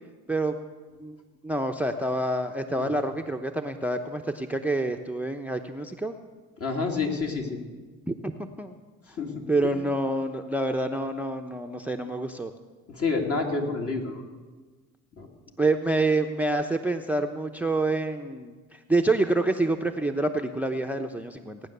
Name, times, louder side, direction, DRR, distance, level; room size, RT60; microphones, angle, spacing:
voice 1, 1.0-6.2 8.1-8.8 9.5-12.5 15.6-21.6, right 2 dB, 5° right, 6 dB, 0.7 m, -27 dB
voice 2, 6.6-7.6 9.2-9.3 9.6-9.7 12.9-14.2 15.2-15.3, left 4 dB, 45° left, 1 dB, 2.8 m, -28 dB
17.5 x 9.5 x 6.7 m, 1.4 s
supercardioid pair, 85°, 33 cm